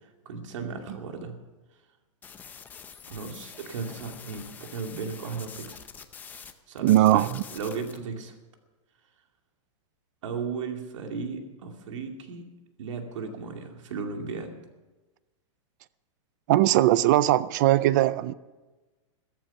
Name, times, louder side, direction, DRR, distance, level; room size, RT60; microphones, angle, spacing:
voice 1, 0.0-1.4 3.1-5.8 6.4-8.4 10.2-12.4 12.8-14.5, right 5 dB, 70° right, 4 dB, 2.5 m, -36 dB
sound 1, 2.2-6.5 6.8-8.0, left 7 dB, 10° left, 0.6 m, -46 dB
voice 2, 6.8-7.4 16.5-18.3, right 14 dB, 35° right, 18 dB, 0.4 m, -20 dB
14.0 x 14.0 x 5.5 m, 1.2 s
supercardioid pair, 165°, 17 cm